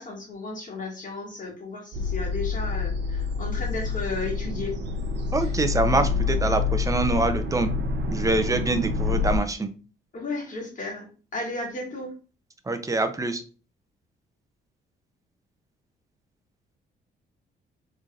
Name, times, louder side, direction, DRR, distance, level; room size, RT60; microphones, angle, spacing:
voice 1, 0.0-4.8 5.4-5.5 10.1-11.1 11.3-12.1, left 3 dB, 40° left, -2 dB, 1.8 m, -34 dB
sound 1, 1.9-9.4, left 4 dB, 60° right, 0.6 m, -27 dB
voice 2, 5.3-7.7 8.1-9.7 12.7-13.4, right 3 dB, 15° right, 8 dB, 0.6 m, -25 dB
3.9 x 3.2 x 2.4 m, 0.37 s
cardioid pair, 90°, 20 cm